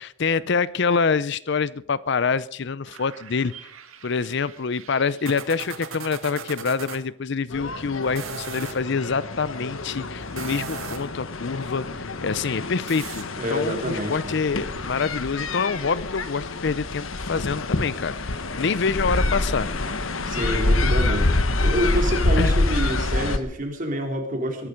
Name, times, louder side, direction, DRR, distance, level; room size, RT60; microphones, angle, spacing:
voice 1, 0.0-3.5 4.0-19.7 22.4-22.6, left 5 dB, 55° left, 18 dB, 0.5 m, -26 dB
sound 1, 2.9-7.0 8.0-8.8 10.2-11.2 12.9-13.2, right 5 dB, 80° right, 1.9 m, -38 dB
sound 2, 7.5-23.4, left 2 dB, 75° left, 1.4 m, -26 dB
voice 2, 13.4-14.3 20.2-21.3 21.6-24.7, right 1 dB, 40° right, 2 dB, 3.8 m, -27 dB
22.0 x 12.0 x 5.1 m, 0.63 s
head